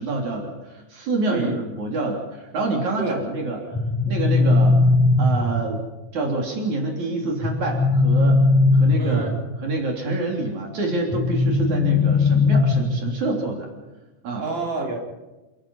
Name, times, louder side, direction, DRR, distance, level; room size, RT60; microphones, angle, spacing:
voice 1, 0.0-3.6 4.1-4.8 5.2-5.8 6.1-8.5 8.7-13.7 14.2-14.5, right 2 dB, 65° right, 1 dB, 4.8 m, -27 dB
voice 2, 1.3-1.6 3.0-3.7 9.0-9.4 14.4-15.0, right 2 dB, 35° right, 0 dB, 5.0 m, -29 dB
sound 1, 3.7-5.7 7.4-9.5 11.1-13.1, left 3 dB, 5° left, 7.3 m, -18 dB
29.0 x 17.5 x 5.6 m, 1.1 s
omnidirectional pair, 3.5 m